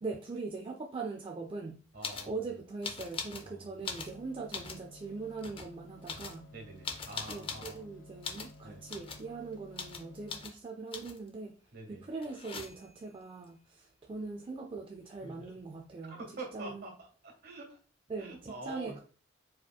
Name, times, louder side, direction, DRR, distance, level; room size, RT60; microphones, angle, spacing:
voice 1, 0.0-1.8 2.3-6.5 7.3-11.6 11.9-16.2 16.5-16.8 18.1-19.0, right 3 dB, 30° right, 2 dB, 0.3 m, -41 dB
voice 2, 1.9-2.4 3.4-3.7 6.5-7.8 8.6-8.8 11.7-12.0 16.1-16.9 17.2-17.8 18.2-19.0, right 2 dB, 55° right, 2 dB, 1.5 m, -45 dB
sound 1, 2.0-2.3 2.8-3.5 3.8-4.8 5.4-5.7 6.1-7.8 8.2-8.6 8.9-9.3 9.8-10.0 10.3-10.5 10.9-11.3 12.2-13.0 14.8-14.9 15.0-15.7, left 5 dB, 30° left, 0.5 m, -41 dB
sound 2, 3.8-10.4, left 1 dB, 80° left, 0.9 m, -54 dB
4.6 x 4.4 x 2.3 m, 0.39 s
head